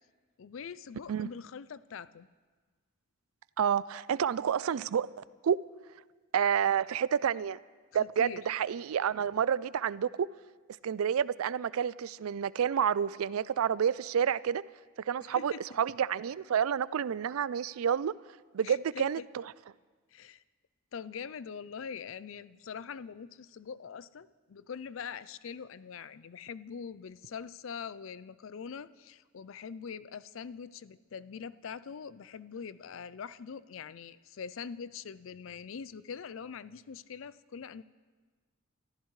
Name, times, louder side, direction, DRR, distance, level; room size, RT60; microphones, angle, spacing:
voice 1, 0.4-2.3 7.9-8.4 15.2-15.6 18.6-19.1 20.1-20.4 20.9-37.8, left 6 dB, 65° left, 16 dB, 0.4 m, -43 dB
voice 2, 3.6-5.6 6.3-7.6 7.9-10.3 10.8-14.6 15.1-18.1 18.5-19.4, right 8 dB, 85° right, 19 dB, 0.4 m, -29 dB
29.0 x 14.5 x 3.2 m, 1.4 s
head